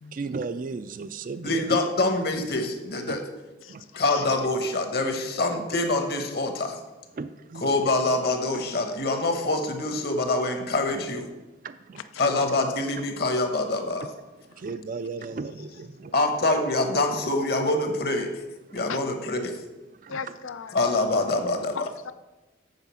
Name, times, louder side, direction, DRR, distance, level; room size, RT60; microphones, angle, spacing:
voice 1, 0.1-1.8 3.1-3.2 3.7-3.8 7.2-7.9 11.6-12.0 14.6-16.1 18.7-18.8 20.0-20.2, right 4 dB, 45° right, 12 dB, 0.3 m, -35 dB
voice 2, 1.4-3.2 4.0-6.8 7.5-11.2 12.2-14.1 16.1-18.3 18.7-19.5 20.7-21.7, left 2 dB, 50° left, 5 dB, 1.1 m, -25 dB
voice 3, 20.1-21.0 21.7-22.1, left 6 dB, 85° left, 13 dB, 0.5 m, -36 dB
8.1 x 4.9 x 6.9 m, 1.1 s
head